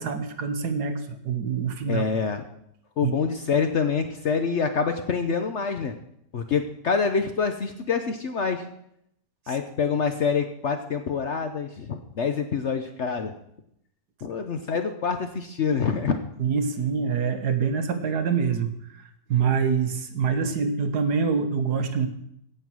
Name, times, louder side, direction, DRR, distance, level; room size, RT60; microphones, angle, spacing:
voice 1, 0.0-2.0 3.0-3.1 9.5-9.6 16.4-19.0 19.3-22.1, right 6 dB, 70° right, 8 dB, 1.6 m, -25 dB
voice 2, 1.9-2.4 3.0-5.9 6.3-8.7 9.5-13.3 14.2-16.2, left 5 dB, 55° left, 7 dB, 0.8 m, -26 dB
16.5 x 5.7 x 6.1 m, 0.75 s
omnidirectional pair, 1.8 m